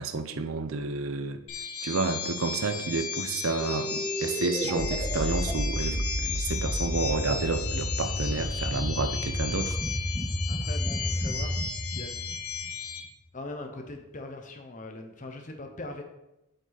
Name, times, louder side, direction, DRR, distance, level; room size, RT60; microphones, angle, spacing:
voice 1, 0.0-1.4 1.8-3.9 4.2-9.8, right 3 dB, 70° right, 9 dB, 0.7 m, -30 dB
sound 1, 1.5-13.0, left 6 dB, 90° left, 1.2 m, -35 dB
sound 2, 3.6-12.9, equal, 15° right, 1.8 m, -31 dB
voice 2, 10.5-11.6 11.9-12.2 13.3-16.0, left 2 dB, 35° left, 5 dB, 0.8 m, -40 dB
7.4 x 5.3 x 4.0 m, 0.92 s
head